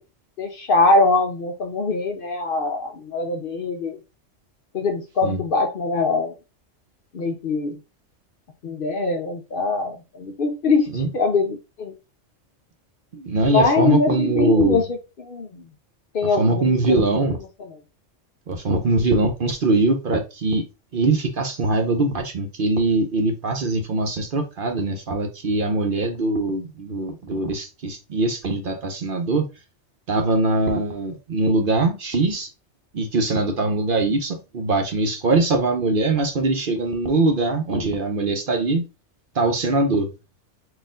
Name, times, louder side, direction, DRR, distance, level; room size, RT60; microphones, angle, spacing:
voice 1, 0.4-4.0 4.7-6.3 7.1-7.8 8.6-11.9 13.5-15.7 16.1-17.2 17.6-17.8, left 3 dB, 55° left, 5 dB, 0.7 m, -22 dB
voice 2, 13.1-14.8 16.4-17.4 18.5-20.6 20.9-29.4 30.1-32.5 32.9-38.8 39.3-40.1, right 2 dB, 55° right, 4 dB, 0.7 m, -22 dB
4.2 x 2.5 x 3.6 m, 0.28 s
omnidirectional pair, 1.3 m